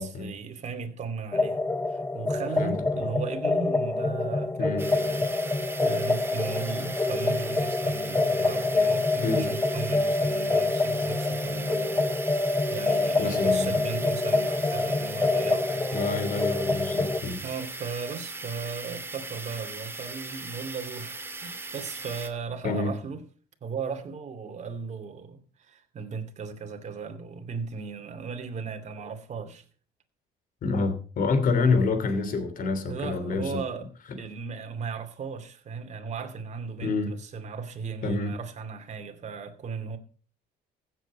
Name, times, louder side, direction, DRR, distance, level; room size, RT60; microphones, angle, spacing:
voice 1, 0.0-1.6 1.9-12.1 12.4-16.0 17.4-23.2 23.6-29.6 31.7-31.8 32.9-33.9 34.2-40.0, right 5 dB, 45° right, 2.6 m, -36 dB
sound 1, 1.3-17.2, left 2 dB, 15° left, 0.8 m, -26 dB
sound 2, 4.8-22.3, right 3 dB, 15° right, 2.2 m, -39 dB
voice 2, 13.2-13.7 15.9-17.4 22.6-22.9 30.6-33.6 36.8-37.1 38.0-38.3, left 4 dB, 55° left, 3.1 m, -27 dB
15.5 x 8.2 x 5.3 m
cardioid pair, 110°, 17 cm